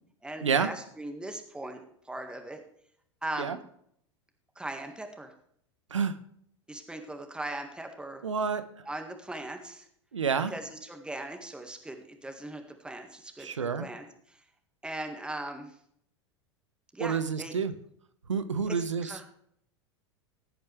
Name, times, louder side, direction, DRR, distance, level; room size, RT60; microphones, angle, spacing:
voice 1, 0.2-1.8 2.1-2.6 3.2-3.6 4.6-5.3 6.7-8.2 8.9-9.9 10.5-14.4 14.8-15.7 16.9-17.5 18.7-19.2, right 1 dB, 5° right, 5 dB, 1.9 m, -39 dB
voice 2, 8.2-8.6 10.1-10.5 13.4-13.9 17.0-17.7 18.3-19.3, right 6 dB, 85° right, 12 dB, 1.0 m, -29 dB
16.5 x 8.7 x 3.4 m, 0.68 s
figure-of-eight pair, 85°, 15 cm